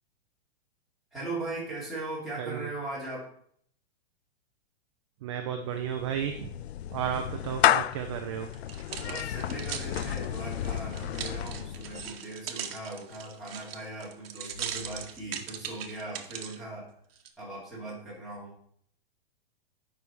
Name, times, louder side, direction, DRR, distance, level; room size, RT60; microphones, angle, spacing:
voice 1, 1.1-3.3 8.9-16.9 17.4-18.5, right 2 dB, ahead, -9 dB, 2.7 m, -39 dB
voice 2, 2.4-2.7 5.2-6.5 6.9-8.5, right 8 dB, 30° right, 5 dB, 0.5 m, -33 dB
Clapping / Meow, 5.7-12.2, left 11 dB, 90° left, 0.5 m, -31 dB
sound 1, 8.5-16.6 17.2-17.3, right 8 dB, 65° right, 1.1 m, -40 dB
sound 2, 11.2-12.8 14.5-16.2, left 2 dB, 20° left, 2.4 m, -50 dB
9.0 x 5.6 x 4.6 m, 0.65 s
supercardioid pair, 170°, 31 cm